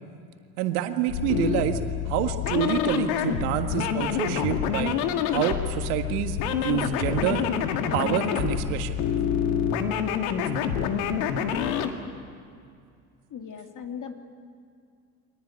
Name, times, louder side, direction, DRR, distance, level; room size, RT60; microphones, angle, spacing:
voice 1, 0.6-1.8 2.1-4.9 5.3-7.4 7.9-9.0, right 10 dB, 75° right, 7 dB, 1.8 m, -27 dB
sound 1, 1.1-11.9, left 8 dB, 75° left, 2.0 m, -27 dB
voice 2, 13.3-14.1, left 7 dB, 40° left, 5 dB, 2.6 m, -38 dB
25.0 x 19.0 x 9.8 m, 2.3 s
hypercardioid pair, 80°, 45 cm